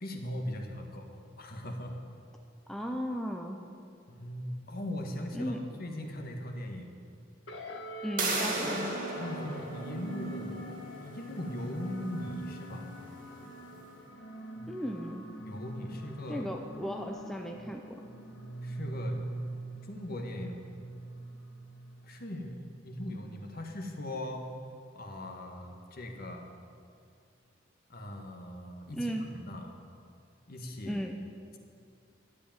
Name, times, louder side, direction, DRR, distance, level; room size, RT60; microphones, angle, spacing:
voice 1, 0.0-2.0 4.1-6.9 9.2-13.0 14.6-14.7 15.4-16.5 18.6-19.3 19.9-20.6 22.0-24.6 24.9-26.5 27.9-29.7 30.5-31.0, left 1 dB, 50° left, 3 dB, 1.6 m, -39 dB
voice 2, 2.7-3.6 5.3-5.6 8.0-8.9 14.7-15.3 16.3-18.0 28.9-29.2 30.8-31.2, equal, ahead, 2 dB, 0.7 m, -36 dB
sound 1, 7.5-22.2, right 1 dB, 65° left, 1.5 m, -43 dB
sound 2, 8.2-13.8, right 2 dB, 45° right, 2.0 m, -37 dB
12.5 x 8.5 x 8.9 m, 2.4 s
head